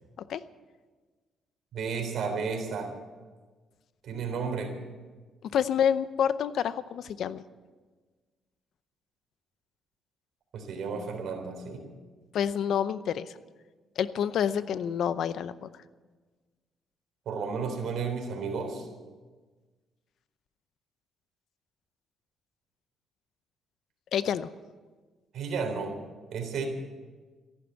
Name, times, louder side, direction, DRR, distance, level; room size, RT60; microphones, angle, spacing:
voice 1, 1.7-2.9 4.0-4.7 10.5-11.9 17.3-18.9 25.3-26.0 26.3-26.7, right 5 dB, 70° right, 4 dB, 3.6 m, -32 dB
voice 2, 5.5-7.4 12.3-13.3 14.0-15.7 24.1-24.5, left 8 dB, 70° left, 15 dB, 0.7 m, -28 dB
14.5 x 11.5 x 8.2 m, 1.4 s
cardioid pair, 90°, 0 cm